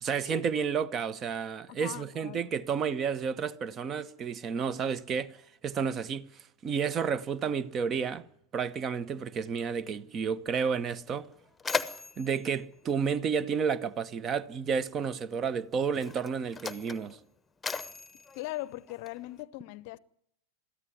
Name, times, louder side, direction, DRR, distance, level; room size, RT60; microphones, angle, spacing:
voice 1, 0.0-5.4 5.6-6.3 6.6-8.2 8.5-11.3 12.2-17.2, right 6 dB, 25° right, 1.0 m, -31 dB
voice 2, 1.7-2.5 18.3-20.0, left 18 dB, 45° left, 0.7 m, -40 dB
Mechanisms, 10.7-10.8 11.1-13.9 14.9-15.0 15.8-19.4, left 5 dB, 10° left, 1.1 m, -38 dB
22.5 x 14.5 x 9.6 m
figure-of-eight pair, 90°, 0 cm